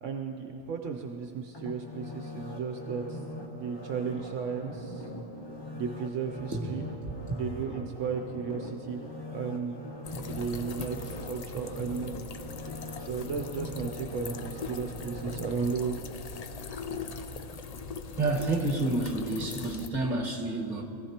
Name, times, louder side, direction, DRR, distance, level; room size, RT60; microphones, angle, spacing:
voice 1, 0.0-3.2 3.5-5.1 5.7-9.0 9.3-9.8 10.2-12.1 13.0-16.0, right 6 dB, 70° right, 3 dB, 1.1 m, -35 dB
sound 1, 1.5-16.6 17.0-17.1, equal, 20° left, 0.9 m, -41 dB
sound 2, 10.0-19.9, left 5 dB, 65° left, 0.4 m, -40 dB
voice 2, 18.2-20.8, right 2 dB, 35° right, -1 dB, 1.6 m, -29 dB
21.5 x 15.0 x 2.9 m, 2.8 s
omnidirectional pair, 1.3 m